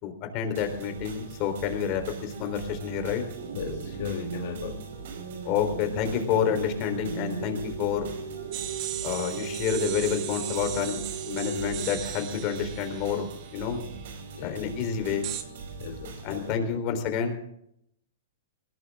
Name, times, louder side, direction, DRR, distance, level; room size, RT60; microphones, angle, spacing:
voice 1, 0.0-3.2 5.4-8.1 9.0-13.8 14.4-15.2 16.2-17.5, left 7 dB, 35° left, 6 dB, 3.9 m, -29 dB
sound 1, 0.5-16.5, right 5 dB, 60° right, 5.8 m, -42 dB
sound 2, 3.3-12.3, right 4 dB, 90° right, 3.7 m, -38 dB
voice 2, 3.6-4.8 14.4-14.6 15.8-16.8, left 8 dB, 55° left, 3 dB, 1.7 m, -37 dB
sound 3, 8.5-14.2 15.2-15.4, right 12 dB, 35° right, 1.8 m, -38 dB
20.0 x 17.5 x 3.7 m, 0.74 s
hypercardioid pair, 150°, 0 cm